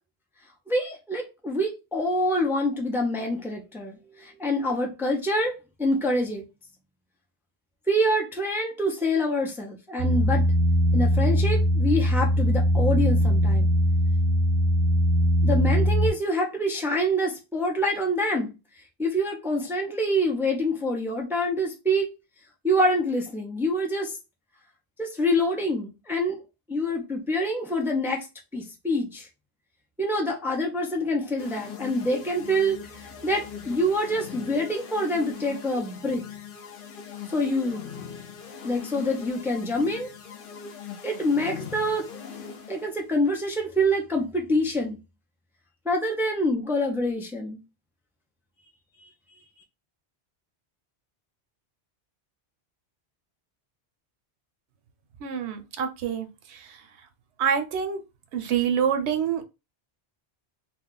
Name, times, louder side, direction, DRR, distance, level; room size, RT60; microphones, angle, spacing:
voice 1, 0.7-6.4 7.9-10.4 10.9-13.7 15.4-18.5 19.0-22.1 22.6-24.2 25.0-26.4 26.7-28.3 28.5-29.3 30.0-36.2 37.3-37.9 38.6-40.1 41.0-42.1 42.7-45.0 45.9-47.6, equal, 5° right, 0.4 m, -26 dB
sound 1, 10.0-16.1, equal, 45° right, 0.7 m, -21 dB
sound 2, 31.4-42.9, left 7 dB, 60° left, 0.7 m, -41 dB
voice 2, 55.2-56.3 57.4-58.0 58.3-59.4, right 8 dB, 80° right, 0.9 m, -26 dB
2.4 x 2.3 x 3.7 m
omnidirectional pair, 1.1 m